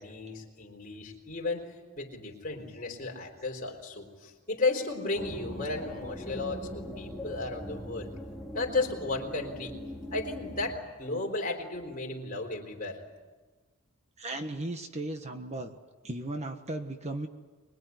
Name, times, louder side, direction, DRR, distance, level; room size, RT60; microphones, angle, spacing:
voice 1, 0.0-1.7 2.0-8.1 8.5-9.7 10.1-13.0, left 3 dB, 40° left, 1 dB, 4.2 m, -34 dB
sound 1, 5.2-10.8, equal, ahead, 2.4 m, -41 dB
voice 2, 14.2-15.7 16.0-17.3, right 2 dB, 30° right, 6 dB, 1.4 m, -36 dB
24.5 x 22.5 x 9.6 m, 1.3 s
head